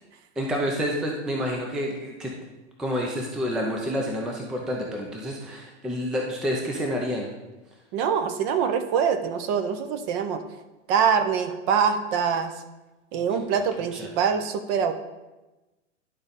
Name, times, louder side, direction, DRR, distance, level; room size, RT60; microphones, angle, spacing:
voice 1, 0.4-2.3 2.8-7.3 13.5-13.6 14.0-14.1, equal, ahead, 0 dB, 0.4 m, -29 dB
voice 2, 7.9-10.4 10.9-12.5 13.1-14.9, right 7 dB, 35° right, 9 dB, 0.7 m, -24 dB
11.0 x 3.9 x 4.1 m, 1.1 s
hypercardioid pair, 125°, 36 cm